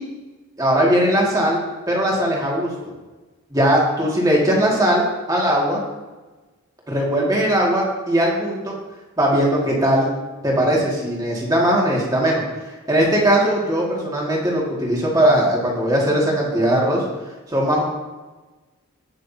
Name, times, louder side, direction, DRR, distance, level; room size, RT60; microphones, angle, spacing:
voice 1, 0.6-1.6 1.9-2.7 3.5-5.8 6.9-8.7 9.2-10.1 10.4-12.4 12.9-17.0 17.5-17.8, right 1 dB, 15° right, -3 dB, 2.2 m, -19 dB
18.0 x 6.3 x 2.8 m, 1.2 s
head